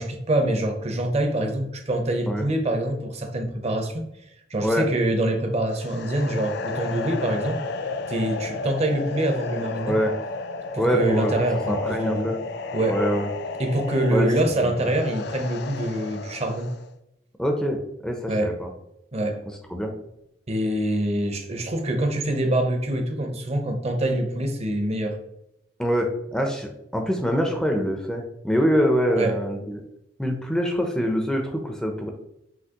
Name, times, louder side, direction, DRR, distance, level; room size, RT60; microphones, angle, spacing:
voice 1, 0.0-4.0 4.5-7.6 8.1-9.9 10.7-12.3 12.7-13.0 13.6-16.7 18.3-18.5 19.1-19.4 20.5-25.2 29.2-29.3, right 1 dB, 35° right, 4 dB, 0.7 m, -25 dB
sound 1, 5.7-16.9, left 3 dB, 65° left, 0.4 m, -32 dB
voice 2, 10.8-11.3 11.7-12.4 12.9-13.3 14.1-14.3 14.6-14.9 17.4-18.7 19.5-19.9 25.8-29.8 30.2-32.1, equal, 5° left, 2 dB, 0.5 m, -24 dB
5.8 x 2.8 x 2.9 m, 0.83 s
head